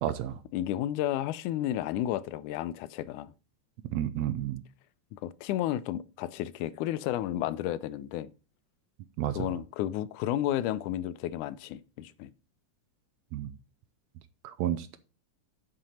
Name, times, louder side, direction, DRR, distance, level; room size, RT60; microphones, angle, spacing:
voice 1, 0.0-0.4 3.9-4.6 9.2-9.4 13.3-13.5 14.4-15.0, right 11 dB, 80° right, 1.7 m, -31 dB
voice 2, 0.5-3.3 5.1-8.3 9.3-12.3, left 12 dB, 90° left, 2.1 m, -32 dB
7.7 x 7.6 x 4.2 m
omnidirectional pair, 3.5 m